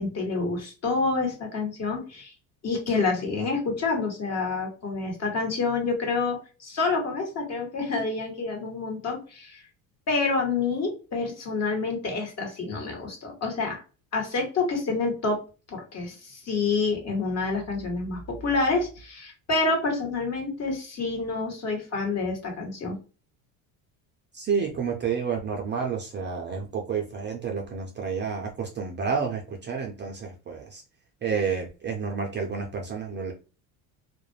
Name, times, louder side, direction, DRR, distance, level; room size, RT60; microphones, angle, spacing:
voice 1, 0.0-2.3 2.6-9.6 10.1-13.8 14.1-15.4 15.7-23.0, left 3 dB, 40° left, 1 dB, 1.3 m, -28 dB
voice 2, 24.3-30.8 31.2-33.3, right 6 dB, 25° right, 1 dB, 0.5 m, -30 dB
2.4 x 2.1 x 3.1 m, 0.34 s
supercardioid pair, 105°, 42 cm